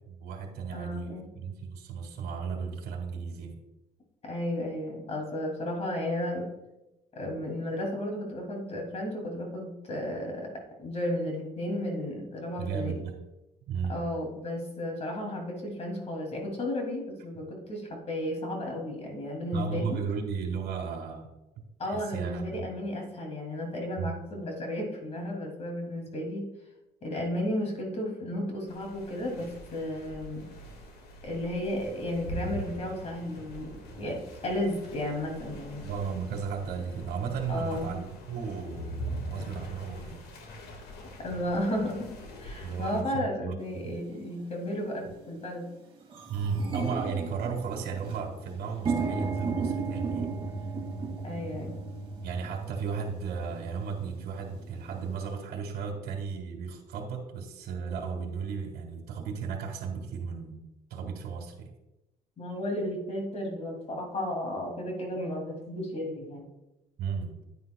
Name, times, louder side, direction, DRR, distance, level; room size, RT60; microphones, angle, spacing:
voice 1, 0.1-3.5 12.6-13.1 13.7-14.0 19.5-21.3 21.8-22.4 24.0-24.1 35.8-40.2 42.6-43.6 43.8-44.0 46.3-50.3 52.2-60.6 60.9-61.7 67.0-67.4, right 6 dB, 70° right, 2 dB, 1.6 m, -35 dB
voice 2, 0.7-1.3 4.2-6.5 7.1-10.5 10.8-12.9 13.9-20.0 21.8-26.4 27.0-30.5 31.2-35.8 37.5-37.9 41.2-42.1 42.4-45.7 51.2-51.7 62.4-66.5, left 1 dB, 40° left, 1 dB, 2.4 m, -33 dB
sound 1, 28.7-43.0, equal, 70° left, 1.7 m, -42 dB
sound 2, 43.8-43.9 44.6-44.9 45.3-45.4 45.6-55.3, right 4 dB, 30° right, 2.1 m, -35 dB
9.7 x 9.4 x 2.2 m, 0.94 s
cardioid pair, 110°, 17 cm